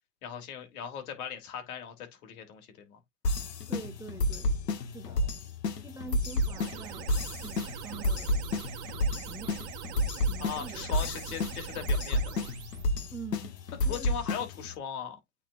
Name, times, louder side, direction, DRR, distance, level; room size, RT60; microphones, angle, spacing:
voice 1, 0.2-3.0 5.0-5.3 5.9-6.1 10.4-12.3 13.8-15.2, left 7 dB, 65° left, 3.0 m, -39 dB
sound 1, 3.2-14.8, left 1 dB, 90° left, 1.4 m, -31 dB
voice 2, 3.7-4.5 4.8-5.2 5.8-7.1 7.4-8.5 9.2-9.5 10.3-10.8 13.1-13.6 13.8-14.4, right 4 dB, 5° right, 0.8 m, -45 dB
sound 2, 6.1-12.9, right 11 dB, 45° right, 1.5 m, -43 dB
8.7 x 4.2 x 2.6 m
hypercardioid pair, 110°, 47 cm